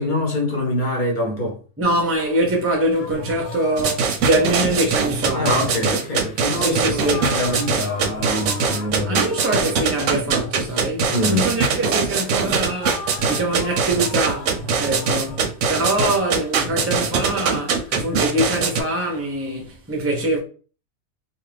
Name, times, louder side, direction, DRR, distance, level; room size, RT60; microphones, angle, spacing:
voice 1, 0.0-1.6 5.3-9.2 11.1-11.5, left 1 dB, 40° left, 0.8 m, -24 dB
voice 2, 1.8-5.7 6.6-7.2 9.1-15.4 15.7-20.4, right 1 dB, 20° right, 0.4 m, -23 dB
sound 1, 2.9-18.7, left 1 dB, 60° left, 0.3 m, -37 dB
sound 2, 3.8-18.8, right 5 dB, 70° right, 0.8 m, -22 dB
2.7 x 2.4 x 3.3 m
omnidirectional pair, 1.4 m